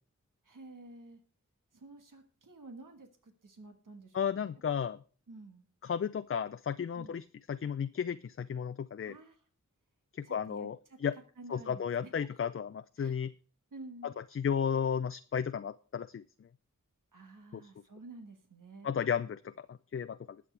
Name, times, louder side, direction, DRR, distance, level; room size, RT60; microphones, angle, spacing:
voice 1, 0.4-1.2 1.7-4.6 5.3-5.6 6.9-7.2 9.0-9.4 10.2-11.0 11.4-12.1 13.0-13.3 13.7-14.1 17.1-18.9, right 2 dB, 85° right, 5 dB, 1.5 m, -51 dB
voice 2, 4.1-5.0 5.8-9.2 10.1-11.2 11.5-13.3 14.0-16.5 17.5-17.7 18.8-20.4, left 7 dB, 45° left, 13 dB, 0.4 m, -34 dB
20.0 x 7.2 x 3.3 m, 0.41 s
wide cardioid pair, 50°, 31 cm